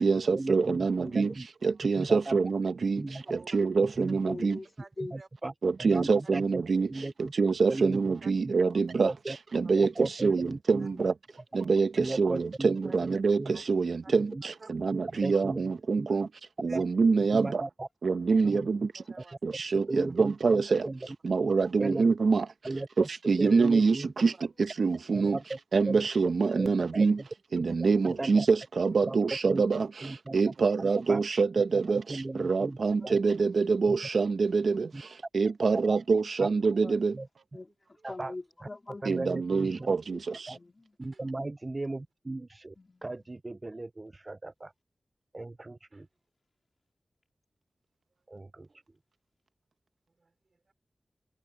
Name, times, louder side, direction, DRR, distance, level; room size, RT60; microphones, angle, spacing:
voice 1, 0.0-1.3 1.6-3.0 3.5-4.6 5.6-6.9 7.4-9.1 9.5-11.1 11.5-11.9 12.2-13.4 13.7-14.3 14.8-16.2 16.6-17.6 18.0-18.8 19.4-19.8 20.2-20.8 21.2-22.4 23.3-24.3 24.8-25.4 25.7-27.2 27.5-29.9 30.3-32.0 32.4-34.8 35.3-37.1 39.1-40.2, right 4 dB, 80° right, 0.9 m, -25 dB
voice 2, 4.3-4.7 5.0-5.2 10.9-11.0 13.5-13.6 15.9-16.1 18.7-18.8 36.8-37.0 37.5-39.0 40.5-41.0 42.8-43.3, left 2 dB, 40° left, 2.9 m, -43 dB
voice 3, 19.0-19.4 22.7-22.9 41.0-41.3 45.9-46.0 48.7-48.8 50.2-50.3 50.7-50.8, right 3 dB, 55° right, 3.3 m, -51 dB
voice 4, 41.0-42.0 42.3-42.4 43.0-43.2 43.4-43.9 45.3-45.5, right 2 dB, 35° right, 0.4 m, -34 dB
wide cardioid pair, 85°, 0 cm